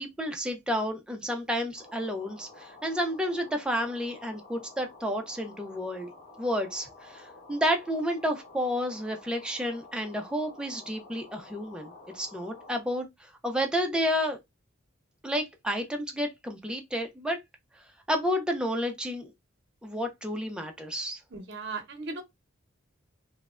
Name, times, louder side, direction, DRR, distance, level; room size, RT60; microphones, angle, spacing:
voice 1, 0.0-6.1 6.4-13.1 13.4-14.4 15.2-17.4 18.1-19.3 19.8-21.2, equal, 5° right, 0.4 m, -31 dB
sound 1, 1.8-12.8, left 3 dB, 30° left, 1.0 m, -51 dB
voice 2, 21.3-22.2, right 3 dB, 55° right, 0.8 m, -37 dB
3.1 x 2.1 x 2.4 m
head